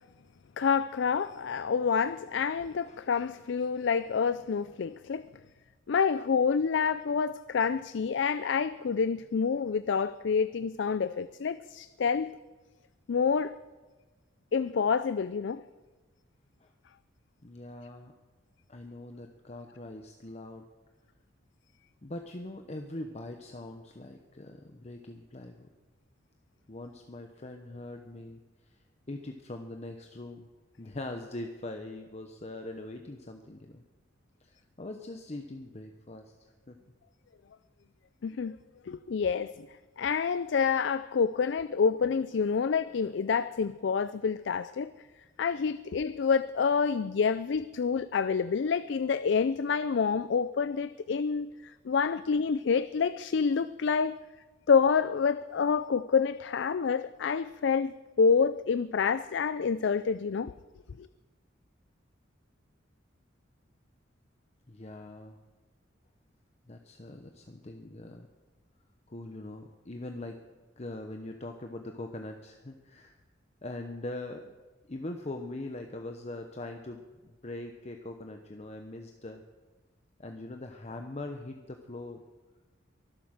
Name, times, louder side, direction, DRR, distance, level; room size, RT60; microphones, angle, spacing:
voice 1, 0.6-5.3 5.9-12.3 13.1-13.6 14.5-15.6 38.2-38.6 38.9-39.7 40.0-44.9 45.4-54.2 54.7-60.5 61.0-61.1, left 5 dB, 65° left, 0.4 m, -28 dB
voice 2, 17.4-18.1 18.7-20.6 22.0-25.7 26.7-28.8 29.1-30.5 30.8-33.8 34.4-36.8 64.7-65.4 66.7-68.3 69.1-70.4 70.8-73.2 73.6-74.5 74.9-79.4 80.2-82.2, left 2 dB, 35° left, 0.9 m, -42 dB
23.0 x 7.9 x 6.4 m
head